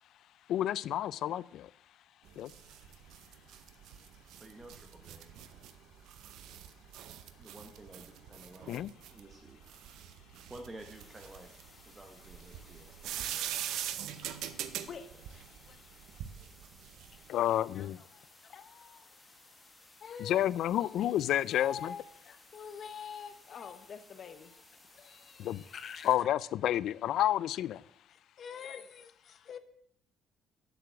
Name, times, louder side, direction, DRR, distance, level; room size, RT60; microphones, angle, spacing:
voice 1, 0.5-1.7 2.4-2.5 8.7-8.9 17.3-18.0 20.2-21.9 25.4-25.6 26.0-27.8, left 12 dB, 65° left, 0.3 m, -30 dB
sound 1, 2.3-17.3, right 10 dB, 75° right, 0.7 m, -43 dB
voice 2, 4.4-5.3 7.4-8.7 9.1-9.6 10.5-11.5 11.8-13.4, right 2 dB, 15° right, 1.0 m, -51 dB
sound 2, 10.9-26.2, left 1 dB, 5° left, 1.2 m, -60 dB
voice 3, 14.9-15.8 17.8-18.2 18.5-19.1 20.0-20.4 20.8-21.1 21.5-24.6 25.0-26.2 28.4-29.6, left 7 dB, 45° left, 0.9 m, -46 dB
7.9 x 6.9 x 7.5 m
cardioid pair, 145°, 0 cm